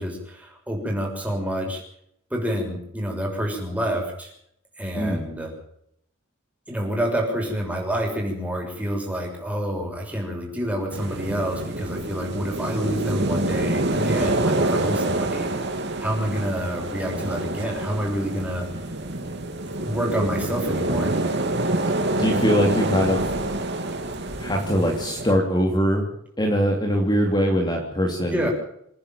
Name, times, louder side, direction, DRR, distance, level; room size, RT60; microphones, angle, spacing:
voice 1, 0.0-1.8 2.3-4.3 4.8-5.5 6.7-15.5 16.0-18.7 19.8-21.2 28.3-28.5, equal, 5° right, 0 dB, 6.7 m, -28 dB
sound 1, 10.9-25.3, right 2 dB, 55° right, 3.0 m, -26 dB
voice 2, 22.2-23.2 24.4-26.1 26.4-28.4, equal, 20° left, 0 dB, 3.2 m, -22 dB
27.5 x 10.5 x 9.2 m, 0.72 s
head